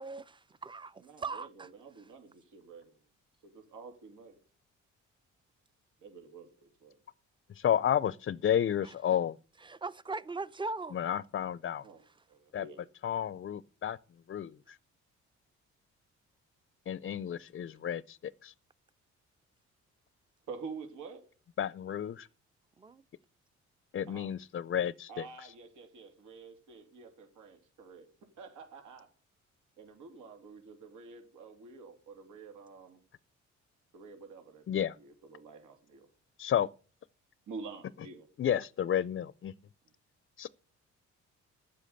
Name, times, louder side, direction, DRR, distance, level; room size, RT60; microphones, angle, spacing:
voice 1, 0.0-1.7 8.8-9.2 9.6-11.0 22.8-23.0, right 3 dB, 15° right, 0.6 m, -40 dB
voice 2, 1.0-3.0 3.4-4.4 6.0-7.0 11.8-12.0 12.3-12.8 20.5-21.2 24.1-24.3 25.1-28.1 28.4-29.1 29.8-33.0 33.9-36.1 37.5-38.3, right 4 dB, 80° right, 2.9 m, -48 dB
voice 3, 7.5-9.4 10.9-11.8 12.5-12.7 13.0-14.0 14.3-14.8 16.9-18.5 21.6-22.3 23.9-25.5 34.7-35.0 36.4-36.7 38.4-39.5 40.4-40.5, left 9 dB, 40° left, 0.5 m, -31 dB
11.5 x 7.6 x 6.6 m
cardioid pair, 90°, 30 cm